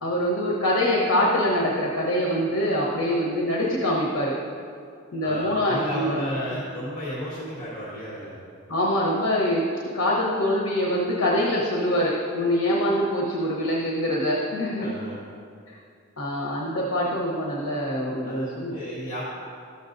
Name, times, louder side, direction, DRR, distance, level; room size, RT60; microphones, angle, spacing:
voice 1, 0.0-4.4 5.1-6.3 8.7-9.6 9.9-14.9 15.7-15.8 16.2-18.8, left 1 dB, 70° left, -4 dB, 1.0 m, -24 dB
voice 2, 5.2-8.4 14.8-15.2 18.2-18.5 18.7-19.2, equal, 40° left, -7 dB, 1.7 m, -33 dB
12.5 x 7.0 x 2.6 m, 2.3 s
head